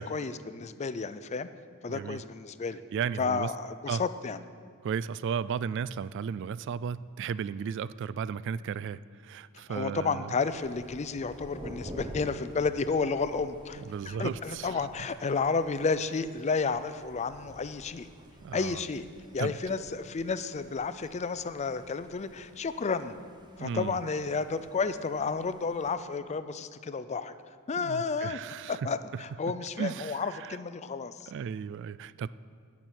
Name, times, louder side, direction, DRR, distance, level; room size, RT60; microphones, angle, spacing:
voice 1, 0.0-1.5 1.8-2.8 3.2-4.4 9.7-18.1 18.5-19.0 19.3-23.2 23.6-27.3 27.7-28.4 28.7-31.3, left 4 dB, 30° left, 12 dB, 0.4 m, -31 dB
voice 2, 1.9-2.2 2.9-3.5 3.9-4.0 4.8-10.3 13.8-14.8 18.4-18.8 19.4-19.5 23.6-24.0 27.8-29.2 29.8-30.6 31.3-32.3, right 7 dB, 60° right, 17 dB, 0.3 m, -35 dB
Thunder, 10.5-26.0, equal, 20° right, 0.9 m, -49 dB
13.0 x 6.0 x 9.1 m, 2.1 s
head